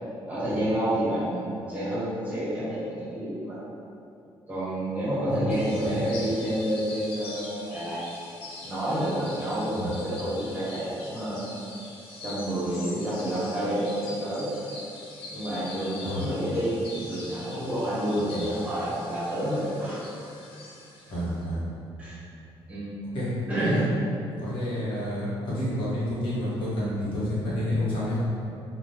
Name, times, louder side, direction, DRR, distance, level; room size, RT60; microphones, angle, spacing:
voice 1, 0.3-3.6 4.5-8.0 8.6-11.4 12.2-14.5 15.3-20.0 22.0-22.2 22.7-22.9 23.5-23.8, right 1 dB, 15° right, -10 dB, 1.2 m, -29 dB
sound 1, 5.5-21.4, left 2 dB, 75° left, 0.6 m, -43 dB
voice 2, 21.1-21.6 23.1-23.3 23.6-23.8 24.3-28.2, left 1 dB, 60° left, -9 dB, 1.1 m, -29 dB
3.4 x 2.4 x 2.7 m, 2.6 s
cardioid pair, 125°, 10 cm